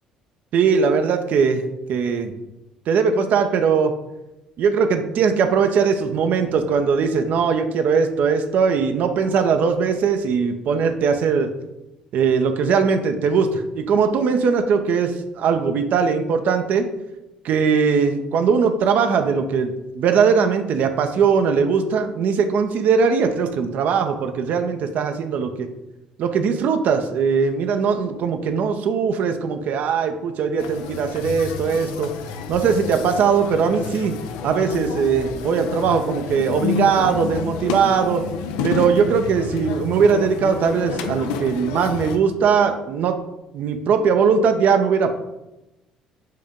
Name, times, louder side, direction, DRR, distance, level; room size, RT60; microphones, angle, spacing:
voice 1, 0.5-2.3 2.9-3.9 4.6-11.5 12.1-16.9 17.4-25.7 26.2-32.1 32.5-34.1 34.4-38.2 38.6-43.2 43.5-45.2, right 6 dB, 55° right, 7 dB, 0.6 m, -20 dB
sound 1, 30.6-42.2, left 6 dB, 65° left, 0.5 m, -30 dB
7.6 x 3.7 x 3.6 m, 0.95 s
figure-of-eight pair, 50°, 3 cm